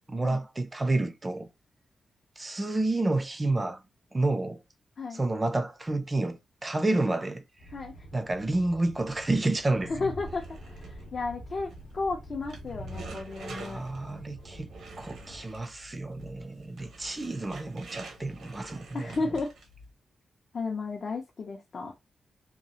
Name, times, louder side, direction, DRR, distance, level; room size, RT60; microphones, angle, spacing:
voice 1, 0.1-1.5 2.4-3.8 4.1-4.6 5.1-7.4 8.1-9.9 13.5-14.7 15.0-19.2, right 2 dB, 20° right, 0.4 m, -29 dB
Train, 7.6-15.4, equal, 70° left, 0.8 m, -45 dB
voice 2, 9.9-10.8 11.1-13.8 18.9-19.5 20.5-21.9, left 3 dB, 45° left, 0.5 m, -33 dB
sound 1, 10.2-19.9, right 2 dB, 80° right, 0.8 m, -47 dB
2.9 x 2.4 x 2.7 m
wide cardioid pair, 150°, 0 cm